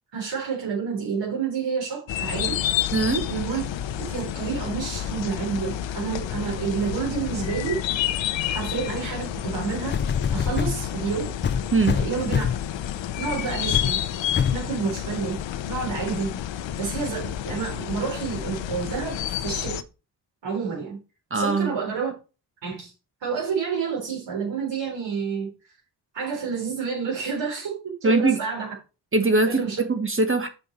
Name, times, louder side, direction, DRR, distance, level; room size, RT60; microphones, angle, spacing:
voice 1, 0.1-2.6 3.3-3.6 4.1-7.8 8.5-10.0 10.3-11.3 11.9-12.4 13.2-14.0 14.5-15.4 15.7-16.4 16.8-19.8 20.4-21.0 21.3-22.1 22.6-22.9 23.2-25.5 26.1-28.7 29.4-29.8, right 6 dB, 75° right, 4.0 m, -29 dB
sound 1, 2.1-19.8, left 11 dB, 80° left, 0.8 m, -30 dB
voice 2, 2.9-3.2 11.7-12.0 21.3-21.7 28.0-28.4 29.1-30.5, right 3 dB, 30° right, 1.3 m, -21 dB
sound 2, 9.4-9.5 9.9-10.8 11.4-12.7 13.2-13.4 13.7-14.0 14.4-14.7 15.4-15.5, left 7 dB, 25° left, 0.4 m, -25 dB
7.0 x 5.2 x 4.5 m
cardioid pair, 85°, 44 cm